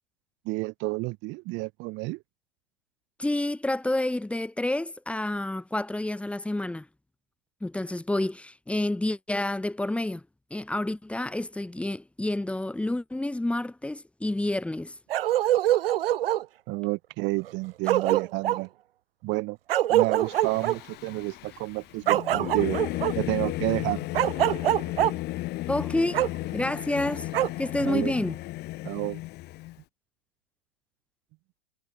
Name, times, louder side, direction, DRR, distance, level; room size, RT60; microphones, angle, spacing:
voice 1, 0.5-2.2 16.7-18.7 19.2-19.6 19.9-22.8 23.2-24.1 27.9-28.2 28.8-29.2, right 24 dB, 35° right, 5.2 m, -30 dB
voice 2, 3.2-6.9 7.6-10.2 10.5-14.9 25.7-26.2 26.5-27.3 27.6-28.3, left 1 dB, 5° left, 5.7 m, -29 dB
Bark, 15.1-16.4 17.5-17.6 17.9-18.6 19.7-20.8 22.1-23.1 24.1-25.1 26.1-26.3 27.3-27.5, right 13 dB, 65° right, 0.6 m, -24 dB
Singing / Musical instrument, 20.2-29.8, left 18 dB, 30° left, 4.6 m, -34 dB
hypercardioid pair, 125°, 31 cm